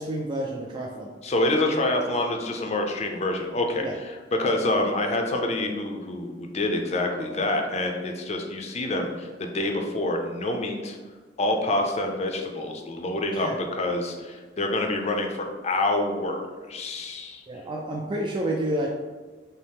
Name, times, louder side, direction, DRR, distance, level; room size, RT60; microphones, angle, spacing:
voice 1, 0.0-1.1 3.8-3.9 13.3-13.5 17.5-18.9, right 1 dB, 25° right, -1 dB, 0.3 m, -29 dB
voice 2, 1.2-11.0 11.4-17.4, left 2 dB, 40° left, 3 dB, 0.5 m, -27 dB
5.4 x 2.0 x 3.5 m, 1.4 s
head